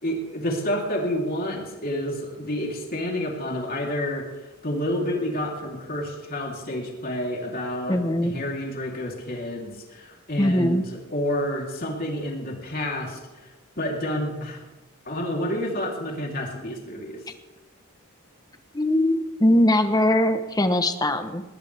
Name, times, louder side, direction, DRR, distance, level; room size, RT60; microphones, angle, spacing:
voice 1, 0.0-4.2 4.6-8.0 8.2-13.2 13.8-14.6 15.0-17.2, left 1 dB, 45° left, -1 dB, 3.4 m, -29 dB
voice 2, 7.9-8.3 10.4-10.8 18.7-21.4, left 1 dB, 15° left, 8 dB, 1.1 m, -21 dB
20.0 x 19.5 x 3.5 m, 1.1 s
head